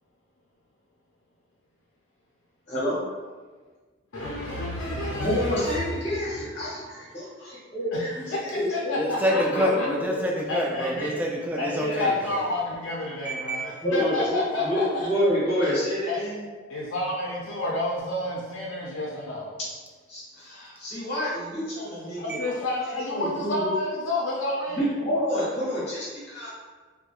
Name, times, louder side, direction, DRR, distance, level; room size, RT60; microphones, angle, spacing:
voice 1, 2.7-3.0 5.2-9.9 13.8-16.4 20.1-22.6 22.9-23.7 24.7-26.5, equal, 35° left, -8 dB, 0.9 m, -28 dB
voice 2, 4.1-6.2 7.9-8.4 8.7-9.9 10.5-11.1 11.6-15.1 16.1-16.2 16.7-19.5 22.2-24.8, left 2 dB, 80° left, -4 dB, 0.5 m, -30 dB
voice 3, 4.8-5.3 9.0-12.4 13.2-13.6, equal, 10° right, -2 dB, 0.3 m, -27 dB
4.4 x 2.2 x 2.3 m, 1.4 s
head